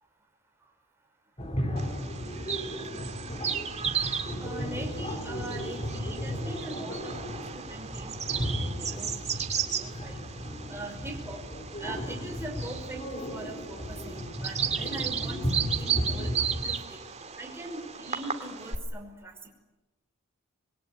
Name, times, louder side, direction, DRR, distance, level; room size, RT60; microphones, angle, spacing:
sound 1, 1.4-16.7, equal, 30° left, 3.7 m, -35 dB
Bird vocalization bird call bird song, 1.8-18.8, right 8 dB, 30° right, 2.2 m, -35 dB
voice 1, 4.4-7.2 7.5-10.2 10.7-11.4 11.8-17.0 17.4-19.5, right 2 dB, 10° right, 1 dB, 5.5 m, -42 dB
26.5 x 21.5 x 9.8 m, 1.1 s
head